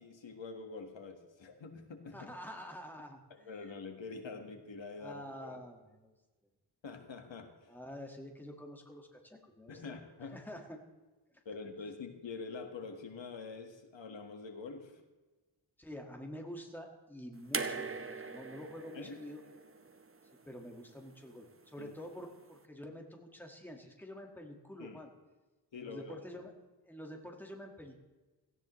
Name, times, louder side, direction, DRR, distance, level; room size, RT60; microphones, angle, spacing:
voice 1, 0.0-2.3 3.3-5.6 6.8-7.7 9.7-10.4 11.4-15.0 18.9-19.2 21.8-21.9 24.8-25.0 25.7-26.2, left 4 dB, 90° left, 5 dB, 1.7 m, -46 dB
voice 2, 2.1-3.7 5.0-6.1 7.7-10.0 10.3-10.8 15.8-19.4 20.5-25.1 25.8-26.5 26.9-28.0, equal, 5° left, 2 dB, 1.7 m, -48 dB
sound 1, 17.5-20.7 21.9-22.0, right 4 dB, 30° right, 0.8 m, -41 dB
17.0 x 15.5 x 3.2 m, 1.2 s
wide cardioid pair, 130°, 44 cm